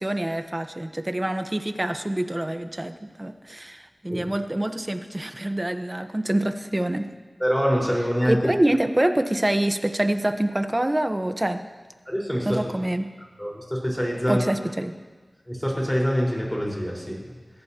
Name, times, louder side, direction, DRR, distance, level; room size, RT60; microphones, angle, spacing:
voice 1, 0.0-7.1 8.2-11.6 12.4-13.1 14.3-14.9, right 1 dB, 25° right, 8 dB, 0.9 m, -26 dB
voice 2, 7.4-8.4 12.1-12.6 13.4-14.5 15.5-17.2, equal, 10° left, -3 dB, 4.4 m, -25 dB
22.5 x 15.0 x 2.9 m, 1.3 s
wide cardioid pair, 70°, 0 cm